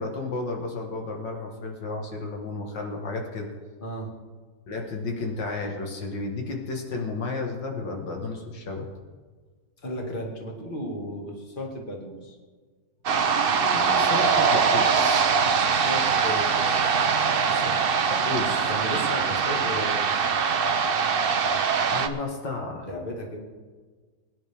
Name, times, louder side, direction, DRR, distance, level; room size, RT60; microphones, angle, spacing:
voice 1, 0.0-3.5 4.7-8.9 13.6-15.3 18.1-18.7 21.9-22.9, left 3 dB, 85° left, 1 dB, 2.3 m, -32 dB
voice 2, 3.8-4.1 9.8-12.4 15.4-18.0 18.7-20.0 22.8-23.5, equal, 30° left, 0 dB, 2.3 m, -35 dB
sound 1, 13.1-22.1, right 6 dB, 55° right, 0.6 m, -22 dB
21.0 x 10.5 x 3.6 m, 1.5 s
omnidirectional pair, 1.9 m